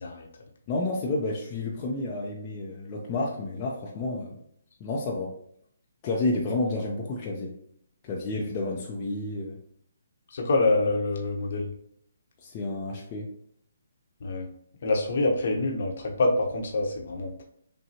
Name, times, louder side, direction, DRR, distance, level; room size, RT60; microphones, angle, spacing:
voice 1, 0.7-4.3 4.8-5.3 6.0-7.5 8.0-9.6 12.4-13.3, left 2 dB, 30° left, -2 dB, 0.6 m, -30 dB
voice 2, 10.3-11.7 14.2-14.5 14.8-17.4, left 2 dB, 55° left, 1 dB, 0.9 m, -26 dB
6.2 x 2.2 x 2.8 m, 0.68 s
figure-of-eight pair, 135°, 0 cm